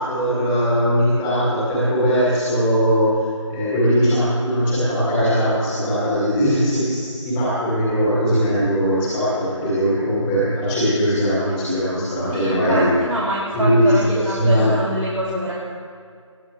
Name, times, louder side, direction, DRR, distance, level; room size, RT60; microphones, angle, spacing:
voice 1, 0.0-3.1 3.5-12.9 13.5-14.7, equal, 5° left, -9 dB, 2.1 m, -20 dB
voice 2, 12.3-15.5, right 1 dB, 85° right, -6 dB, 2.8 m, -26 dB
20.0 x 14.0 x 3.4 m, 2.2 s
figure-of-eight pair, 170°, 16 cm